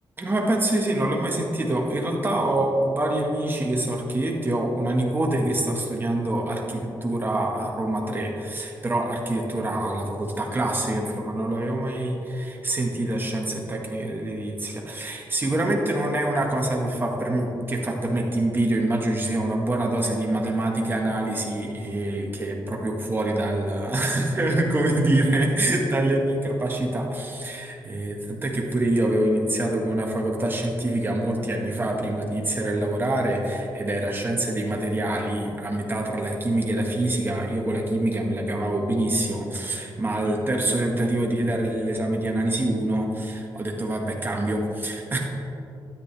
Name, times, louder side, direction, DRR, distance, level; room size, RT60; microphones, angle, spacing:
voice 1, 0.2-45.2, right 1 dB, 25° right, 0 dB, 1.6 m, -25 dB
12.5 x 10.5 x 3.4 m, 2.8 s
cardioid pair, 110°, 9 cm